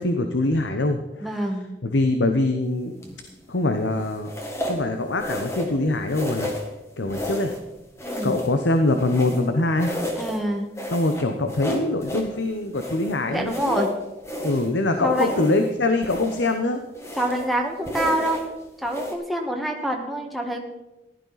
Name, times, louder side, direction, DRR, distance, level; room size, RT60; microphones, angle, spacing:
voice 1, 0.0-1.3 1.8-2.9 3.5-4.3 4.6-6.5 7.0-7.5 8.2-9.9 10.9-13.9 14.4-16.8, left 2 dB, 80° left, 6 dB, 1.0 m, -23 dB
voice 2, 1.2-1.7 8.0-8.4 10.1-10.7 13.3-13.9 15.0-15.4 17.2-18.4 18.8-20.6, right 1 dB, ahead, 1 dB, 1.4 m, -26 dB
sound 1, 3.0-3.3 4.2-4.8 5.2-5.8 6.1-6.7 7.1-7.6 8.0-9.5 9.8-10.4 10.8-12.3 12.7-14.7 15.1-15.7 16.0-16.5 16.9-17.5 17.8-18.5 18.8-19.1, left 1 dB, 15° left, 1.7 m, -32 dB
15.5 x 12.0 x 4.1 m, 0.98 s
head